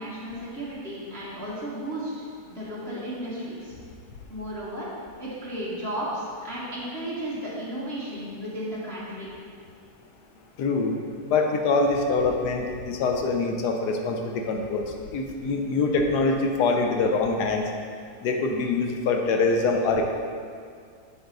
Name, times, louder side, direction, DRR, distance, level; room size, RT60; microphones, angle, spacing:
voice 1, 0.0-2.2 2.5-3.7 4.3-4.9 5.2-9.3, right 1 dB, 40° right, -7 dB, 1.6 m, -34 dB
voice 2, 10.6-14.8 15.1-17.7 18.2-20.0, left 3 dB, 75° left, 3 dB, 1.2 m, -24 dB
7.0 x 5.5 x 3.9 m, 2.2 s
omnidirectional pair, 1.8 m